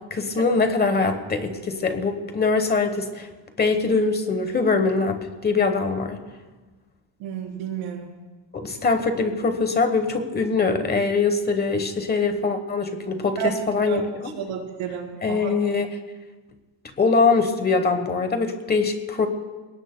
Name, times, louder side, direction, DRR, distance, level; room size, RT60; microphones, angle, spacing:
voice 1, 0.1-3.3 3.6-6.2 8.5-14.3 15.2-15.9 17.0-19.3, left 4 dB, 20° left, 7 dB, 1.1 m, -23 dB
voice 2, 7.2-8.1 13.4-13.5 13.9-14.0 14.3-15.5, right 10 dB, 90° right, 0 dB, 3.8 m, -30 dB
29.0 x 18.0 x 2.2 m, 1.3 s
cardioid pair, 175°, 46 cm